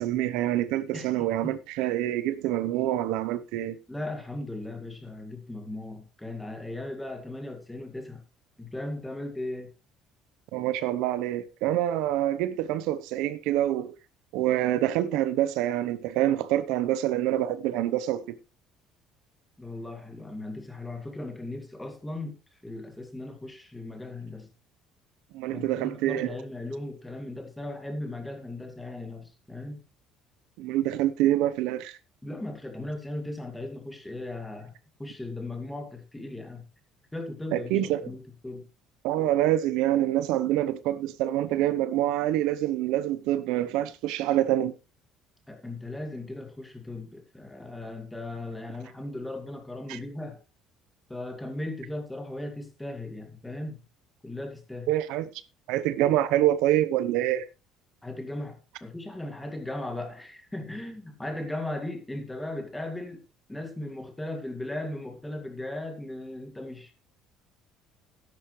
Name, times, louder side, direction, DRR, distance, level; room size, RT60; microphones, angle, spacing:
voice 1, 0.0-3.8 10.5-13.9 14.3-18.4 25.3-26.4 30.6-32.0 37.5-38.0 39.0-44.7 49.9-50.0 54.9-55.2 55.7-57.5, right 13 dB, 80° right, 0.9 m, -26 dB
voice 2, 0.9-1.5 3.9-8.2 8.6-9.7 19.6-24.5 25.5-29.8 32.2-36.6 37.1-38.7 45.5-50.4 51.1-53.8 54.2-54.9 58.0-63.2 63.5-66.9, left 1 dB, 5° left, 2.2 m, -37 dB
13.0 x 10.5 x 3.2 m
cardioid pair, 160°, 0 cm